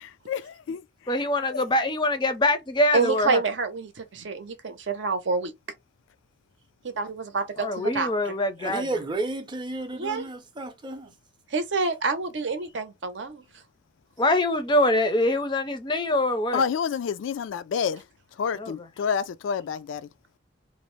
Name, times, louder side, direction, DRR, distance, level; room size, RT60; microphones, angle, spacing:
voice 1, 0.0-0.4 0.7-0.8 1.5-1.6 16.5-18.0 18.4-20.1, left 6 dB, 85° left, 0.3 m, -28 dB
voice 2, 1.1-3.4 7.6-9.1 14.2-16.6 18.5-18.7, left 1 dB, 25° left, 0.4 m, -24 dB
voice 3, 2.9-5.5 7.0-8.1 9.9-10.2 11.5-13.4, right 4 dB, 70° right, 0.6 m, -27 dB
voice 4, 8.6-11.1, right 2 dB, 25° right, 0.5 m, -32 dB
2.6 x 2.0 x 3.0 m
head